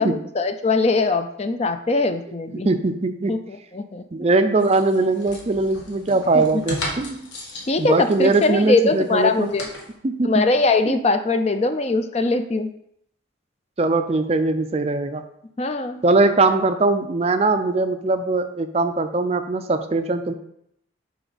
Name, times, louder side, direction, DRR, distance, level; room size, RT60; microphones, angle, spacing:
voice 1, 0.0-2.7 3.3-4.0 6.3-6.6 7.7-9.7 10.2-12.7 15.6-16.0, left 3 dB, 30° left, 9 dB, 0.4 m, -21 dB
voice 2, 2.5-3.4 4.1-7.3 7.8-9.5 10.0-10.4 10.9-11.0 13.8-15.2 16.0-20.3, right 3 dB, 30° right, 9 dB, 0.4 m, -21 dB
sound 1, 4.6-9.9, left 1 dB, 65° left, 1.5 m, -36 dB
7.9 x 5.0 x 4.0 m, 0.74 s
head